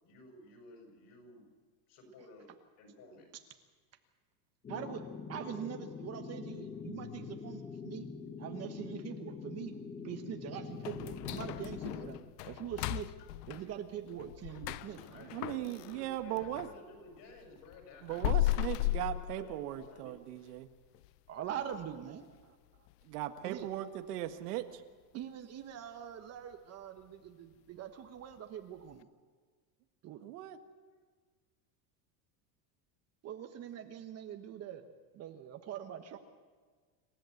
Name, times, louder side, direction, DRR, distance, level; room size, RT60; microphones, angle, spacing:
voice 1, 0.0-1.5 1.9-2.5 2.8-3.3 14.8-20.1, left 2 dB, 45° left, 3 dB, 6.4 m, -54 dB
sound 1, 4.6-12.2, left 5 dB, 20° left, 1.5 m, -44 dB
voice 2, 4.7-5.0 5.3-8.1 8.4-9.7 10.0-13.1 13.5-15.2 21.3-22.3 23.4-23.7 25.1-29.1 30.0-30.2 33.2-34.8 35.1-36.2, right 9 dB, 30° right, 6 dB, 1.2 m, -43 dB
sound 2, 10.8-16.8 17.2-20.0 20.4-20.5 20.9-21.1 21.6-21.9 22.2-22.3 22.9-23.0, left 16 dB, 80° left, 0.7 m, -36 dB
voice 3, 15.3-16.7 18.0-20.7 23.0-24.8 30.2-30.6, right 14 dB, 80° right, 7 dB, 1.7 m, -38 dB
27.0 x 14.0 x 8.0 m, 1.5 s
supercardioid pair, 150°, 47 cm